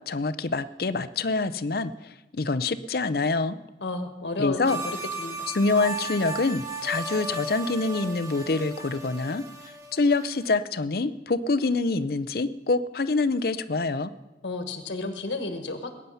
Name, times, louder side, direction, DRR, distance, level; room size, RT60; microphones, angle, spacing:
voice 1, 0.1-1.9 2.3-3.6 4.4-4.8 5.5-9.4 9.9-14.1, left 3 dB, 55° left, 13 dB, 0.6 m, -26 dB
voice 2, 3.8-5.5 14.4-15.9, left 2 dB, 85° left, 6 dB, 1.5 m, -32 dB
sound 1, 4.6-10.5, right 2 dB, 20° right, 1.6 m, -36 dB
20.5 x 9.5 x 5.7 m, 1.1 s
head